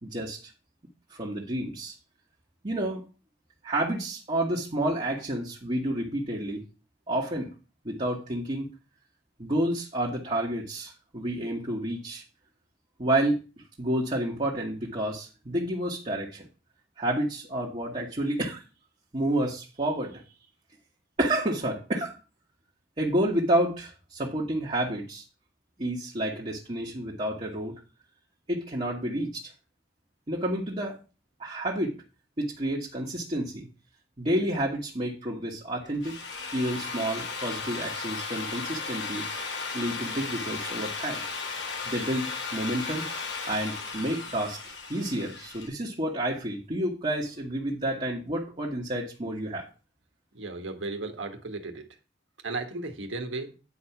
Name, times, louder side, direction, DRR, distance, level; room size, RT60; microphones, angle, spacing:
voice 1, 0.0-0.4 1.1-1.9 2.6-3.0 3.6-6.6 7.1-7.5 7.8-8.7 9.4-12.2 13.0-13.4 13.8-16.5 17.0-18.6 19.1-20.2 21.2-22.2 23.0-25.2 25.8-27.8 28.5-29.5 30.3-31.0 31.4-31.9 32.4-33.7 34.2-36.2 36.5-39.3 39.7-41.2 41.8-43.1 43.5-44.6 44.9-49.7, right 1 dB, 35° right, -4 dB, 1.5 m, -29 dB
Drill, 35.8-45.7, left 4 dB, 70° left, 2.0 m, -35 dB
voice 2, 50.3-51.8 52.4-53.5, right 3 dB, 90° right, 5 dB, 1.5 m, -35 dB
9.7 x 4.7 x 5.8 m, 0.33 s
head